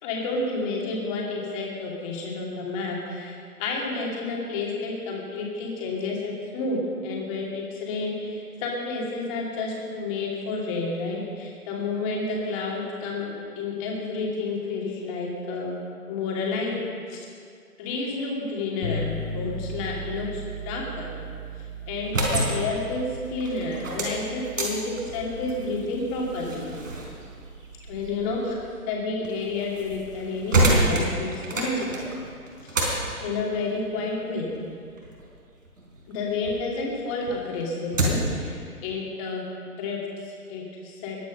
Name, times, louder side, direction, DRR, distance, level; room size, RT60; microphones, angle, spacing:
voice 1, 0.0-15.7 16.1-16.8 17.1-17.2 17.8-21.1 21.9-26.6 27.9-28.5 28.9-32.0 32.6-32.7 33.2-34.5 36.1-41.2, left 3 dB, 20° left, -2 dB, 2.6 m, -30 dB
sound 1, 18.8-28.6, right 1 dB, 60° left, 2.7 m, -38 dB
sound 2, 21.9-36.6 37.0-38.4, right 2 dB, 60° right, 4.2 m, -29 dB
21.0 x 9.3 x 5.5 m, 2.2 s
figure-of-eight pair, 135°, 45 cm